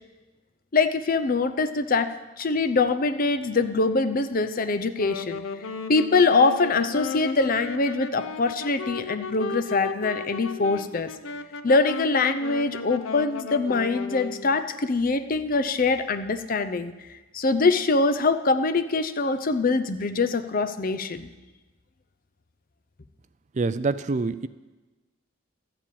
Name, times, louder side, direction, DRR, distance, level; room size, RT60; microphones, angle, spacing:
voice 1, 0.7-2.1 2.4-5.4 5.9-11.1 11.6-16.9 17.3-21.3, left 3 dB, 45° left, 10 dB, 0.7 m, -23 dB
Wind instrument woodwind instrument, 4.9-14.6, left 4 dB, 85° left, 0.7 m, -35 dB
voice 2, 23.6-24.5, right 3 dB, 35° right, 14 dB, 0.4 m, -26 dB
13.0 x 7.5 x 8.6 m, 1.2 s
head